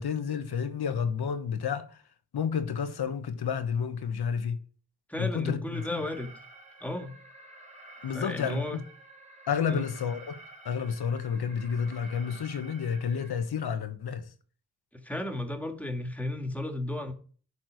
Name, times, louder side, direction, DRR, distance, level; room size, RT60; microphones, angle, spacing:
voice 1, 0.0-2.0 2.3-4.6 5.2-6.0 8.0-8.6 9.5-10.4 10.6-14.2, left 7 dB, 75° left, 1.2 m, -30 dB
voice 2, 5.1-6.3 6.8-7.1 8.1-8.8 9.7-9.9 14.9-17.1, left 1 dB, 5° left, 2.1 m, -34 dB
Alarm, 5.7-13.3, right 2 dB, 20° right, 2.4 m, -50 dB
11.0 x 4.4 x 6.4 m
cardioid pair, 60°, 38 cm